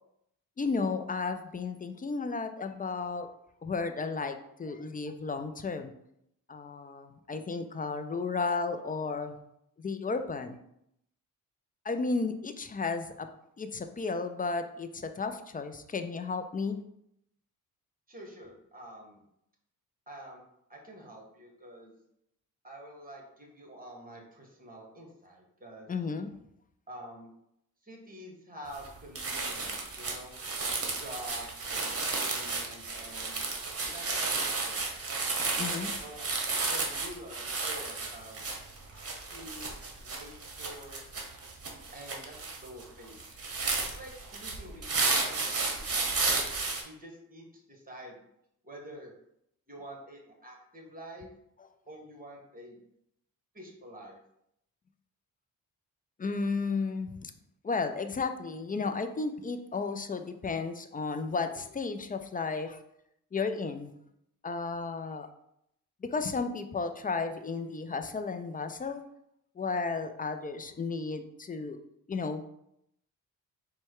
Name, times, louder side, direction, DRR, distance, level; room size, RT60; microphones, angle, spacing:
voice 1, 0.6-3.3 3.6-5.9 6.5-9.4 9.8-10.6 11.9-13.3 13.6-16.8 25.9-26.3 35.6-35.9 38.9-39.0 56.2-57.3 57.6-62.8 63.3-63.9 64.4-65.3 66.1-69.0 69.6-71.8 72.1-72.4, left 4 dB, 25° left, 8 dB, 0.4 m, -33 dB
voice 2, 18.1-19.2 20.1-20.4 20.7-22.0 22.6-25.9 26.9-27.3 27.8-30.4 31.0-33.4 33.9-35.0 36.0-36.3 36.7-38.4 39.3-41.0 41.9-43.2 43.8-46.5 46.8-48.2 48.6-49.1 49.7-51.3 51.9-52.8 53.5-54.2, right 1 dB, 20° right, 0 dB, 1.6 m, -47 dB
sound 1, 28.7-28.9 29.2-46.8, right 3 dB, 40° right, 1.1 m, -33 dB
4.2 x 2.3 x 4.6 m, 0.77 s
supercardioid pair, 50°, 38 cm